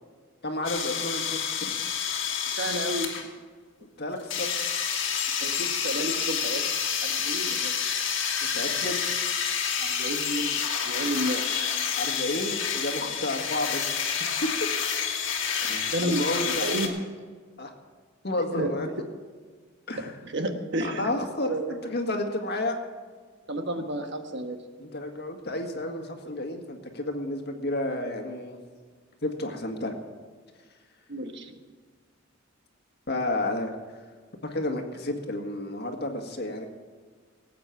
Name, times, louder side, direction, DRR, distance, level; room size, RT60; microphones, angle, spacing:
voice 1, 0.4-1.7 4.0-4.7 8.5-9.0 12.0-13.9 15.6-16.9 17.6-17.7 18.2-18.9 19.9-20.1 20.8-22.8 24.8-28.6 29.2-30.0 33.1-33.7 34.4-36.7, left 1 dB, 55° left, 4 dB, 1.7 m, -31 dB
sound 1, 0.6-3.3 4.3-16.9, left 7 dB, 70° left, 1.9 m, -29 dB
voice 2, 2.5-3.2 5.4-6.7 7.0-8.0 9.8-10.6 10.8-11.4 15.9-16.9 18.5-18.7 20.2-21.1 21.4-21.7 23.5-24.6 31.1-31.5, right 1 dB, 60° right, 6 dB, 1.3 m, -31 dB
18.5 x 8.6 x 5.9 m, 1.5 s
head